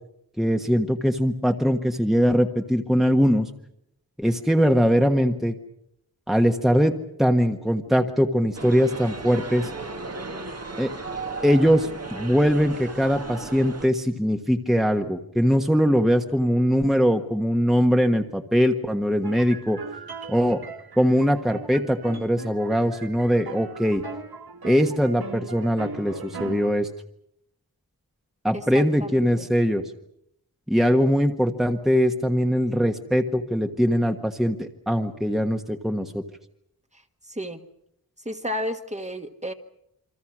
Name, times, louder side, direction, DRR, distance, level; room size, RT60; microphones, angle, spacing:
voice 1, 0.4-3.5 4.2-5.5 6.3-9.7 10.8-10.9 11.4-19.8 20.3-20.6 21.0-24.0 24.6-26.9 28.4-29.8 30.7-36.2, equal, ahead, 4 dB, 1.4 m, -21 dB
sound 1, 8.5-13.9, right 3 dB, 40° right, 1.6 m, -35 dB
sound 2, 19.2-26.7, right 5 dB, 80° right, 1.5 m, -39 dB
voice 2, 28.5-29.5 37.3-37.6 38.2-39.5, equal, 20° right, 6 dB, 1.6 m, -32 dB
28.0 x 24.5 x 6.2 m, 0.76 s
wide cardioid pair, 85°, 37 cm